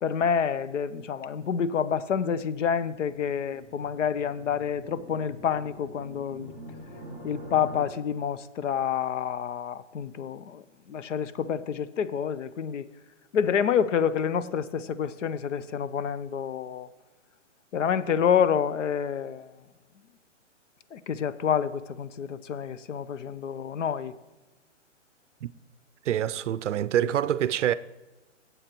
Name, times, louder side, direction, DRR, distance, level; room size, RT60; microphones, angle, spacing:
voice 1, 0.0-6.5 7.2-12.8 13.3-16.9 17.7-19.5 20.9-24.1, left 7 dB, 75° left, 0.6 m, -28 dB
sound 1, 3.1-7.9, equal, 15° left, 0.5 m, -45 dB
voice 2, 26.1-27.7, right 11 dB, 70° right, 0.5 m, -26 dB
14.5 x 8.0 x 2.9 m
hypercardioid pair, 165°, 38 cm